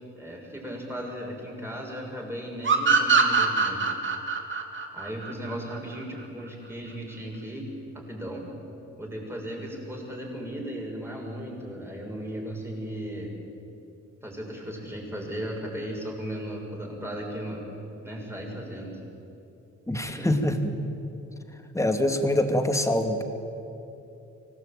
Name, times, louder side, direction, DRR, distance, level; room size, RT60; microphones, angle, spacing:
voice 1, 0.2-3.8 4.9-7.7 8.1-8.5 9.0-13.3 14.2-17.6 18.0-19.0 20.1-20.4, equal, 10° right, -1 dB, 7.0 m, -36 dB
sound 1, 2.6-6.0, right 5 dB, 40° right, 2.8 m, -23 dB
voice 2, 19.9-20.7 21.7-23.2, left 1 dB, 10° left, 6 dB, 2.3 m, -24 dB
23.5 x 18.5 x 9.1 m, 2.9 s
cardioid pair, 90°, 30 cm